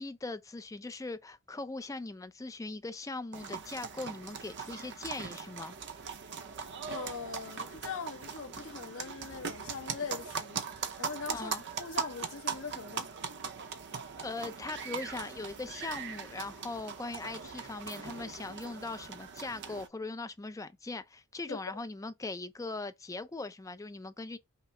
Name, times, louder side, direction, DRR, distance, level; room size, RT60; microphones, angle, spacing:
voice 1, 0.0-5.8 11.3-11.6 14.2-24.4, left 3 dB, 15° left, 0.4 m, -40 dB
sound 1, 3.3-19.9, right 6 dB, 55° right, 0.7 m, -40 dB
voice 2, 6.9-10.6 11.0-11.5 11.8-13.1 21.5-21.6, left 5 dB, 65° left, 0.9 m, -41 dB
5.8 x 2.0 x 4.3 m
head